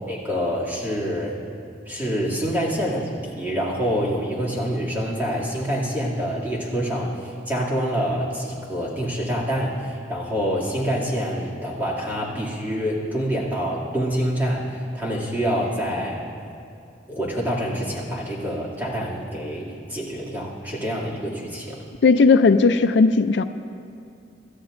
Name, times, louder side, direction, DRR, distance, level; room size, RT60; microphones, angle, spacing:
voice 1, 0.1-1.4 1.9-16.3 17.1-21.8, equal, 10° right, -5 dB, 2.4 m, -26 dB
voice 2, 22.0-23.4, left 4 dB, 70° left, 10 dB, 0.4 m, -16 dB
26.0 x 13.0 x 2.6 m, 2.5 s
head